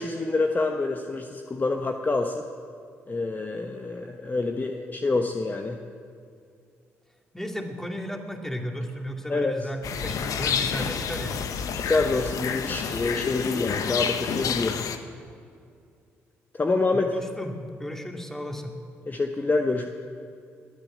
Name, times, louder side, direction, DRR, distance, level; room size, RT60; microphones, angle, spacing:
voice 1, 0.0-2.4 3.1-5.8 9.3-9.6 11.7-14.9 16.5-17.1 19.1-19.9, left 3 dB, 30° left, 4 dB, 1.2 m, -27 dB
voice 2, 7.3-11.4 16.9-18.7, equal, 5° left, 2 dB, 2.7 m, -34 dB
sound 1, 9.8-15.0, left 7 dB, 60° left, 1.1 m, -29 dB
21.0 x 9.1 x 7.5 m, 2.3 s
hypercardioid pair, 50°, 6 cm